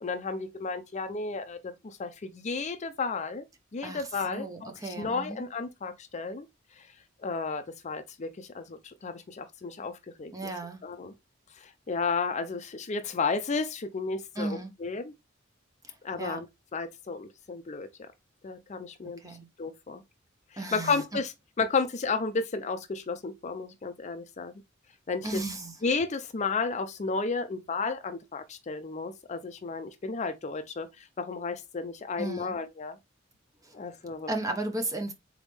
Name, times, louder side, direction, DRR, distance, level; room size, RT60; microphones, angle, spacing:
voice 1, 0.0-3.4 3.7-6.5 6.8-6.9 7.2-10.5 10.8-11.1 11.6-15.1 16.0-16.5 16.7-17.9 18.4-19.2 19.6-20.0 20.7-24.5 25.1-25.4 25.8-33.0 33.7-34.3, left 4 dB, 35° left, 0.5 m, -33 dB
voice 2, 3.8-5.4 10.3-10.8 14.4-14.7 15.8-16.4 19.2-19.5 20.6-21.0 25.2-25.7 32.2-32.6 33.6-33.8 34.3-35.1, right 2 dB, 20° right, 0.8 m, -35 dB
4.0 x 3.6 x 3.3 m
head